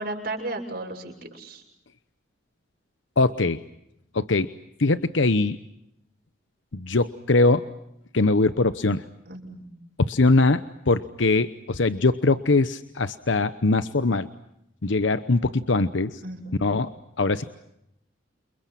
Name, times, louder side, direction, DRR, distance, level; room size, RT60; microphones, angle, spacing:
voice 1, 0.0-1.6 9.3-9.7 16.2-16.6, right 2 dB, 50° right, 1 dB, 6.8 m, -34 dB
voice 2, 3.2-3.6 4.1-4.5 4.8-5.6 6.7-7.7 8.1-9.0 10.0-14.3 14.8-16.2 16.6-16.9 17.2-17.5, left 3 dB, 80° left, 12 dB, 0.9 m, -22 dB
29.0 x 29.0 x 5.9 m, 0.80 s
head